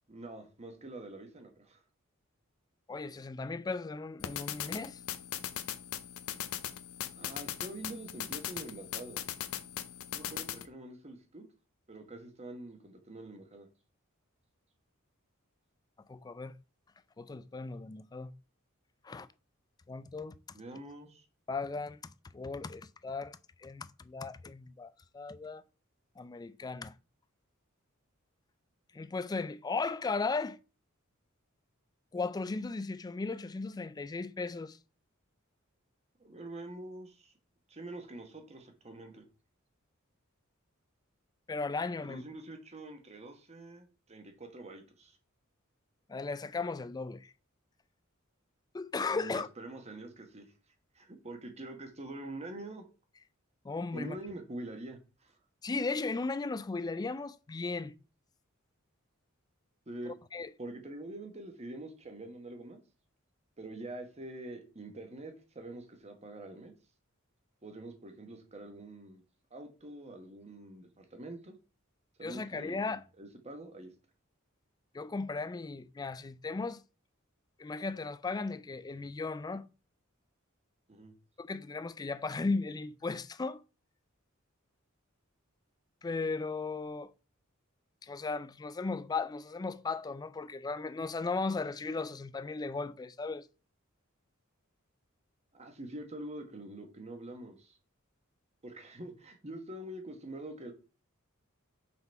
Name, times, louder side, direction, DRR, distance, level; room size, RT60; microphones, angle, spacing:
voice 1, 0.1-1.8 7.2-9.2 10.1-11.4 11.9-13.7 20.5-21.2 36.2-37.3 37.7-39.2 42.0-45.2 49.1-50.5 50.9-52.8 53.9-55.3 59.9-60.1 60.6-62.8 63.6-66.7 67.6-69.2 69.5-71.5 72.2-72.8 73.2-73.9 80.9-81.1 95.5-97.8 98.6-100.7, right 2 dB, 30° right, 1.2 m, -45 dB
voice 2, 2.9-5.0 16.1-16.5 17.2-18.3 19.0-19.3 19.9-20.4 21.5-25.6 26.2-26.9 28.9-30.6 32.1-34.8 41.5-42.2 46.1-47.3 48.7-49.5 53.6-54.2 55.6-57.9 60.1-60.5 72.2-73.0 74.9-76.8 77.6-79.6 81.4-83.6 86.0-87.1 88.0-93.5, left 3 dB, 20° left, 0.3 m, -36 dB
sound 1, 4.2-10.7, left 10 dB, 80° left, 0.6 m, -39 dB
5.7 x 3.8 x 4.4 m
head